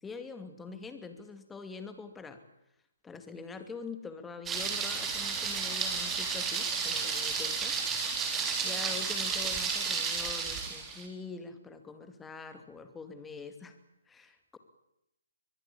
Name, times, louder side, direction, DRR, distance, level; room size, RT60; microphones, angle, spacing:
voice 1, 0.0-2.4 3.0-7.8 8.6-13.7 14.1-14.6, left 4 dB, 10° left, 9 dB, 2.6 m, -44 dB
Thunder, 4.5-11.1, right 5 dB, 10° right, 3.7 m, -32 dB
23.5 x 20.5 x 8.7 m, 0.85 s
figure-of-eight pair, 140°, 0 cm